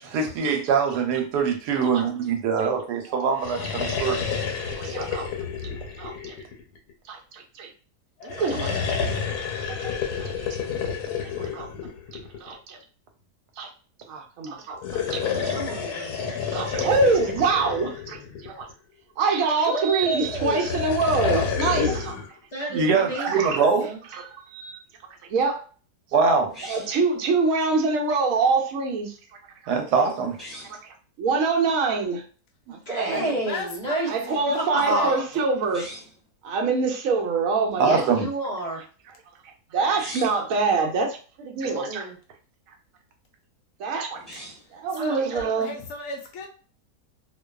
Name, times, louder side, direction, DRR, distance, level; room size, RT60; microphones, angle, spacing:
voice 1, 0.0-4.2 22.7-23.9 26.1-26.5 29.7-30.4 32.7-32.8 37.8-38.3, right 5 dB, 85° right, 1.1 m, -23 dB
sound 1, 3.3-6.9 8.2-12.5 14.7-18.7 20.0-22.3, left 6 dB, 90° left, 1.2 m, -29 dB
voice 2, 4.6-5.3 6.0-6.3 7.1-7.7 8.2-9.3 9.8-10.6 11.4-11.7 12.4-12.8 13.6-13.7 14.1-15.6 16.3-18.7 19.2-22.1 23.1-23.6 24.3-24.8 25.3-25.6 26.7-29.2 29.6-29.7 30.8-32.2 32.7-33.3 34.1-35.9 36.4-38.1 39.7-42.0 43.8-44.2 44.7-45.7, right 4 dB, 70° right, 0.9 m, -25 dB
voice 3, 15.5-16.2 19.6-20.7 22.5-24.0 32.9-34.1 34.5-35.2 37.8-38.8 41.6-42.1, right 1 dB, 45° left, 0.5 m, -29 dB
sound 2, 26.5-27.1 30.3-30.8 35.6-36.2 39.8-40.5 44.1-44.8, equal, ahead, 0.8 m, -41 dB
voice 4, 33.1-35.2 44.9-46.5, left 2 dB, 70° left, 0.9 m, -36 dB
2.5 x 2.2 x 2.2 m
omnidirectional pair, 1.7 m